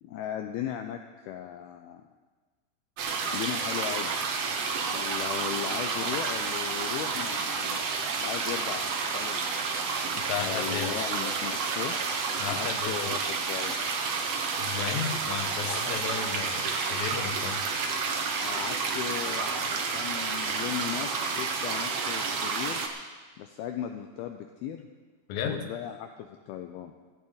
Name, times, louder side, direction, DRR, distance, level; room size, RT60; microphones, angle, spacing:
voice 1, 0.0-2.0 3.3-4.2 4.8-9.6 10.4-12.0 12.5-13.8 15.6-15.8 18.4-22.9 23.4-24.9 25.5-26.9, left 10 dB, 80° left, 5 dB, 2.3 m, -37 dB
sound 1, 3.0-22.9, right 5 dB, 85° right, 1.4 m, -30 dB
voice 2, 10.3-11.1 12.4-13.1 14.6-17.6 25.3-25.6, left 8 dB, 65° left, 4 dB, 2.0 m, -34 dB
17.0 x 15.0 x 4.0 m, 1.4 s
omnidirectional pair, 4.9 m